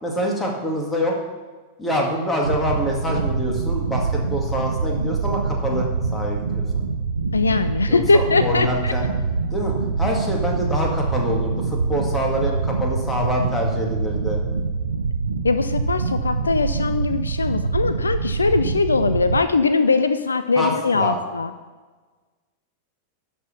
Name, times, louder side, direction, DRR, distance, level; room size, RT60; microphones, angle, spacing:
voice 1, 0.0-1.1 1.8-6.8 7.9-9.1 9.5-14.4 20.6-21.2, equal, 10° left, -1 dB, 2.1 m, -25 dB
sound 1, 2.4-19.4, right 4 dB, 75° right, 0.5 m, -25 dB
voice 2, 7.3-8.9 15.4-21.5, left 4 dB, 75° left, 11 dB, 0.4 m, -21 dB
12.0 x 4.3 x 6.9 m, 1.4 s
figure-of-eight pair, 90°, 0 cm